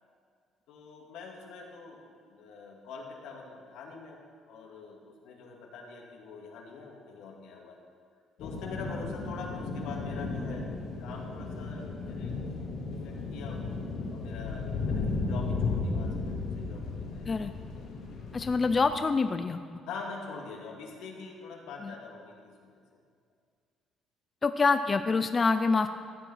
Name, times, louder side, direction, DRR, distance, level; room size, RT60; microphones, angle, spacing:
voice 1, 0.7-4.2 4.5-7.8 8.4-10.7 11.0-12.4 12.9-13.6 14.1-17.9 19.9-22.8, left 4 dB, 85° left, 0 dB, 2.2 m, -44 dB
sound 1, 8.4-18.9, left 3 dB, 60° left, 2.3 m, -34 dB
voice 2, 18.3-19.6 21.8-21.9 24.4-26.0, left 4 dB, 20° left, 9 dB, 0.4 m, -26 dB
14.5 x 9.0 x 5.6 m, 2.1 s
cardioid pair, 160°, 0 cm